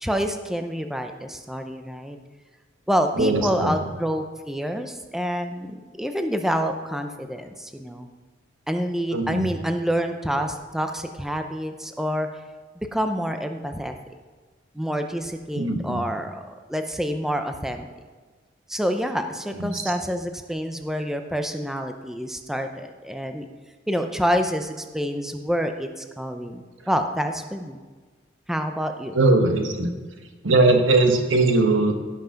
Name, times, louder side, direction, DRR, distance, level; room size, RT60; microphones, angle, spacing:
voice 1, 0.0-2.2 2.9-8.1 8.7-12.3 12.9-14.0 14.7-17.9 18.7-23.5 23.9-27.8 28.5-29.2, equal, ahead, 6 dB, 0.6 m, -27 dB
voice 2, 3.2-3.8 9.1-9.5 15.6-16.0 19.5-19.9 29.1-29.9 30.4-31.9, right 2 dB, 85° right, 5 dB, 1.5 m, -20 dB
16.0 x 5.9 x 5.7 m, 1.4 s
head